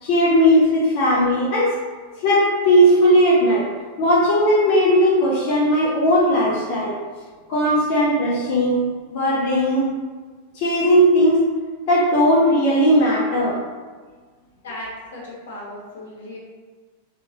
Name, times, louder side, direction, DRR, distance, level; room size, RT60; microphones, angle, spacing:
voice 1, 0.0-1.7 2.2-3.7 4.0-7.0 7.5-8.8 9.1-9.9 10.5-11.4 11.9-13.6, equal, 45° left, -5 dB, 0.7 m, -17 dB
voice 2, 14.6-16.4, left 1 dB, 65° left, -4 dB, 1.2 m, -36 dB
4.1 x 3.0 x 2.8 m, 1.5 s
figure-of-eight pair, 90°, 0 cm